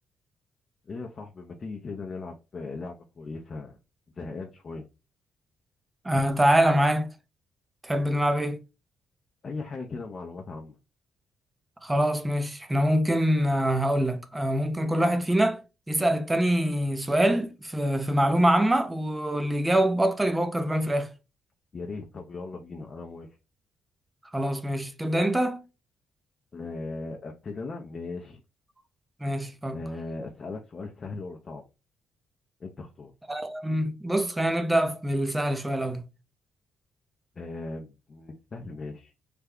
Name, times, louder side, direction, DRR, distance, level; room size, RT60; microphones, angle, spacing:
voice 1, 0.9-3.8 4.2-4.9 9.4-10.8 21.7-23.3 26.5-28.4 29.7-31.6 32.6-33.1 37.4-39.1, left 3 dB, 40° left, 0.6 m, -38 dB
voice 2, 6.0-7.1 7.8-8.6 11.8-15.6 15.9-21.1 24.3-25.6 29.2-29.8 33.3-36.0, right 1 dB, 15° right, 0.5 m, -24 dB
3.4 x 2.2 x 3.6 m
cardioid pair, 90°, 0 cm